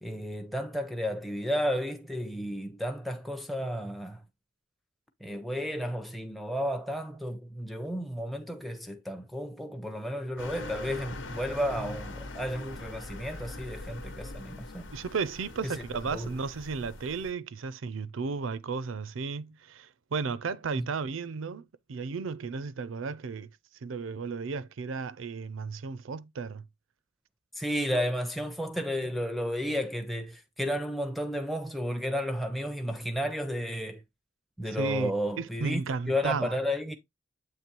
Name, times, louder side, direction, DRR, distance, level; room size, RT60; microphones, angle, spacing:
voice 1, 0.0-4.2 5.2-14.9 15.6-15.8 16.1-16.3 20.7-20.9 27.6-34.0 34.6-36.9, equal, ahead, 0.5 m, -32 dB
sound 1, 10.4-17.3, left 2 dB, 75° left, 1.1 m, -42 dB
voice 2, 14.9-23.5 23.8-26.6 34.6-36.6, right 4 dB, 90° right, 0.5 m, -34 dB
7.6 x 3.1 x 4.4 m
head